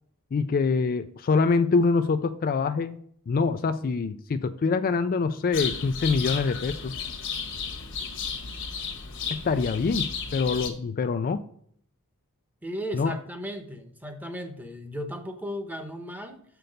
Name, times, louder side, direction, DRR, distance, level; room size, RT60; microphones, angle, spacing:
voice 1, 0.3-7.0 9.3-11.4 12.9-13.2, left 4 dB, 40° left, 10 dB, 0.3 m, -25 dB
sound 1, 5.5-10.7, left 6 dB, 55° left, 1.2 m, -33 dB
voice 2, 12.6-16.4, equal, 10° right, 6 dB, 0.9 m, -36 dB
6.7 x 5.9 x 5.1 m, 0.63 s
head